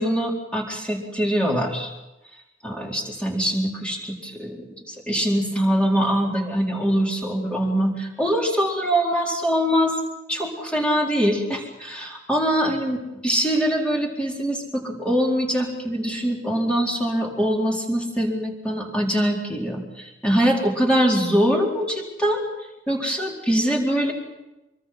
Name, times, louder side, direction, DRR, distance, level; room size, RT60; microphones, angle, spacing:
voice 1, 0.0-1.9 2.6-9.9 10.3-13.0 13.2-22.4 22.9-24.1, equal, 5° left, -1 dB, 4.3 m, -23 dB
25.0 x 24.0 x 5.9 m, 1.0 s
head